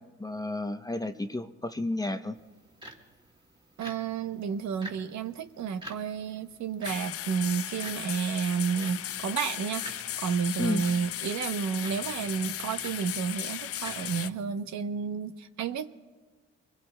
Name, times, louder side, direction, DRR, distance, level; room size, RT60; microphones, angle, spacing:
voice 1, 0.0-2.4 10.6-10.8, left 2 dB, 10° left, 8 dB, 0.6 m, -32 dB
sound 1, 2.3-14.5, right 1 dB, 15° right, 2.1 m, -49 dB
voice 2, 3.8-15.9, right 6 dB, 65° right, 10 dB, 0.8 m, -31 dB
sound 2, 6.8-14.3, left 12 dB, 50° left, 0.4 m, -36 dB
24.5 x 21.0 x 2.2 m, 1.3 s
cardioid pair, 90°, 30 cm